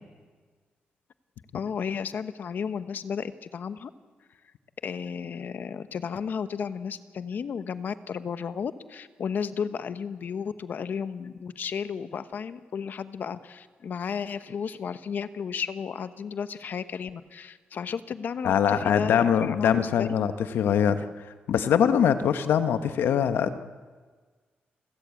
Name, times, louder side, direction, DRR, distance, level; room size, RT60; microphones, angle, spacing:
voice 1, 1.5-3.9 4.8-20.1, left 6 dB, 60° left, 12 dB, 1.0 m, -33 dB
voice 2, 18.4-23.6, left 8 dB, 90° left, 10 dB, 1.1 m, -23 dB
29.5 x 14.0 x 8.4 m, 1.5 s
cardioid pair, 95°, 4 cm